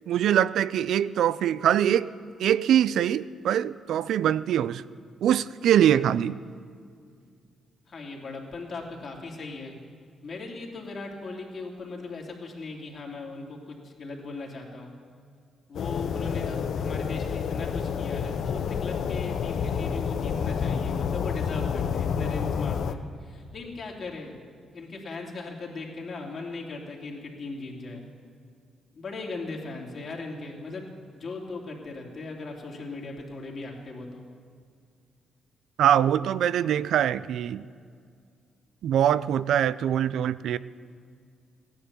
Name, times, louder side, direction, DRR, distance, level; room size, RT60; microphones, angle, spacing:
voice 1, 0.1-2.1 2.4-4.8 5.2-6.4 35.8-37.7 38.8-40.6, right 10 dB, 75° right, 17 dB, 0.4 m, -23 dB
voice 2, 7.8-9.7 10.2-14.9 15.7-24.4 24.7-28.0 28.9-34.2, left 3 dB, 50° left, -1 dB, 2.7 m, -38 dB
sound 1, 15.7-22.9, left 7 dB, 70° left, 0.6 m, -29 dB
15.5 x 10.5 x 7.0 m, 2.2 s
cardioid pair, 80°, 0 cm